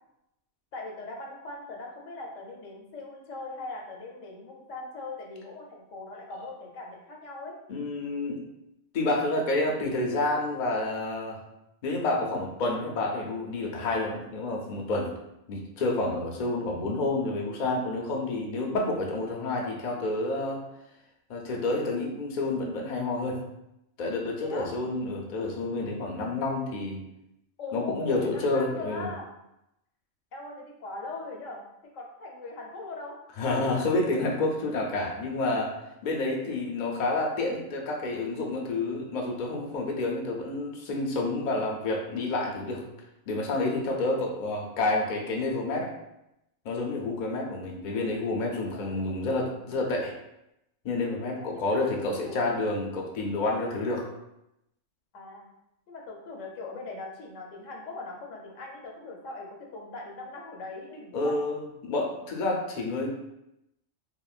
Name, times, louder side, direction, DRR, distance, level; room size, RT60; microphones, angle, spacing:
voice 1, 0.7-7.6 24.4-24.7 27.6-29.3 30.3-31.6 31.9-33.2 36.4-36.5 48.7-49.2 51.3-51.9 52.1-52.4 55.1-55.5 55.9-61.4, left 3 dB, 85° left, 0 dB, 1.0 m, -40 dB
voice 2, 7.7-8.4 8.9-11.4 11.8-15.1 15.5-20.6 21.3-23.4 24.0-27.0 27.7-29.1 33.4-35.7 36.0-42.8 43.3-45.9 46.6-50.1 50.8-54.1 61.1-63.1, left 2 dB, 55° left, 0 dB, 0.5 m, -29 dB
3.6 x 2.1 x 2.3 m, 0.86 s
omnidirectional pair, 1.3 m